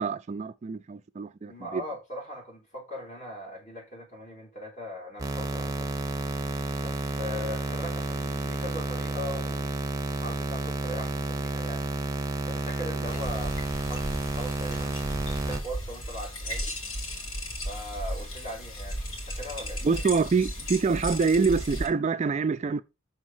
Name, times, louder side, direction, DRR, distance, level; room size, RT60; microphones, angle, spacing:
voice 1, 0.0-1.8 19.8-22.8, right 5 dB, 35° right, 0.3 m, -26 dB
voice 2, 1.4-5.9 6.8-9.7 10.1-11.9 12.5-16.8 17.6-20.0, left 1 dB, 40° left, 4.2 m, -40 dB
sound 1, 5.2-15.6, right 2 dB, 15° right, 0.8 m, -31 dB
sound 2, 13.1-21.9, equal, 85° left, 2.6 m, -35 dB
6.3 x 4.0 x 6.1 m
head